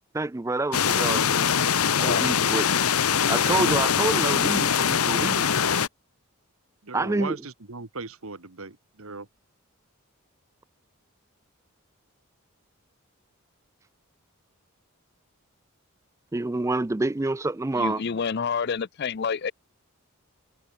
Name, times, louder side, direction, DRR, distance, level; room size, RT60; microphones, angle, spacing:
voice 1, 0.1-1.5 2.0-2.7 3.3-5.6 6.9-7.4 16.3-18.0, right 2 dB, 15° right, 0.3 m, -27 dB
sound 1, 0.7-5.9, left 7 dB, 85° left, 1.0 m, -23 dB
voice 2, 1.9-2.3 17.8-19.5, left 6 dB, 50° left, 0.5 m, -28 dB
voice 3, 6.8-9.3, right 3 dB, 75° right, 1.7 m, -38 dB
head